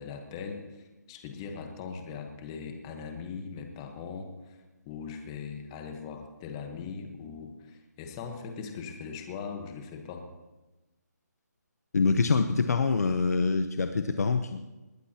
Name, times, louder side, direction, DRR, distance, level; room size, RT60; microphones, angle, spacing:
voice 1, 0.0-4.6 4.8-10.3, left 5 dB, 15° left, 5 dB, 1.2 m, -40 dB
voice 2, 11.9-14.7, left 4 dB, 60° left, 8 dB, 0.9 m, -25 dB
20.0 x 17.5 x 2.9 m, 1.1 s
hypercardioid pair, 170°, 10 cm